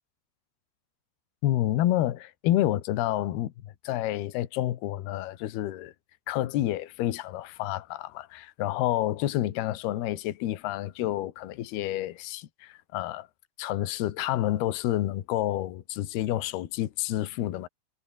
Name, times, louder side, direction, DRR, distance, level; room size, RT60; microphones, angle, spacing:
voice 1, 1.4-5.9 6.3-13.3 13.6-17.7, left 14 dB, 70° left, 3.3 m, -29 dB
omnidirectional pair, 4.9 m